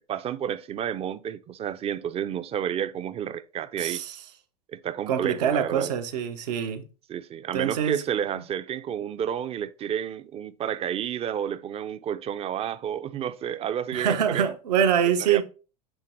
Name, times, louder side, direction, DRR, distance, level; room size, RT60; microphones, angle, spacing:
voice 1, 0.1-4.0 4.7-5.9 7.1-14.5 15.3-15.4, right 9 dB, 30° right, 0.5 m, -30 dB
voice 2, 3.8-4.2 5.1-6.8 7.5-8.0 8.3-8.4 13.9-15.4, right 8 dB, 75° right, 1.3 m, -25 dB
8.8 x 3.5 x 4.5 m
hypercardioid pair, 110°, 21 cm